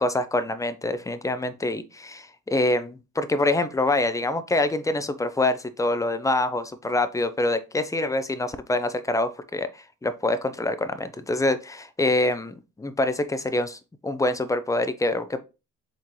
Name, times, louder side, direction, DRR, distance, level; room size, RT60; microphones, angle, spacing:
voice 1, 0.0-15.4, left 2 dB, 10° left, 0.5 m, -25 dB
4.1 x 3.8 x 3.1 m
cardioid pair, 90°, 30 cm